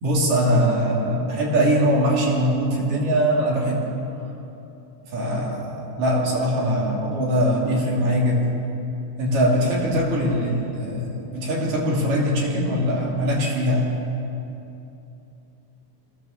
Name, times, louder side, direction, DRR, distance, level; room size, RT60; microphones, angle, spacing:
voice 1, 0.0-3.9 5.1-8.5 9.2-13.9, equal, 50° right, -2 dB, 4.0 m, -22 dB
23.0 x 16.0 x 7.1 m, 2.9 s
omnidirectional pair, 5.4 m